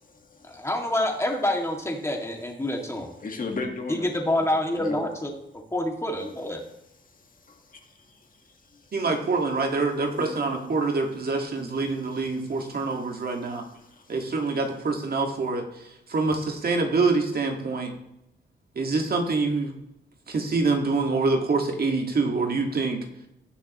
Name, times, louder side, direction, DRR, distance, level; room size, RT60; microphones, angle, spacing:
voice 1, 0.4-3.1 3.9-5.3 5.7-6.6, left 1 dB, 15° left, 1 dB, 2.1 m, -27 dB
voice 2, 3.2-4.5 4.7-5.1 7.5-8.3 8.7-8.8 10.1-10.3 13.7-14.1, left 3 dB, 45° left, 3 dB, 1.7 m, -36 dB
voice 3, 8.9-13.6 14.1-17.9 18.8-19.7 20.3-23.0, right 3 dB, 55° right, 2 dB, 1.9 m, -26 dB
17.5 x 6.5 x 3.0 m, 0.84 s
cardioid pair, 90°, 19 cm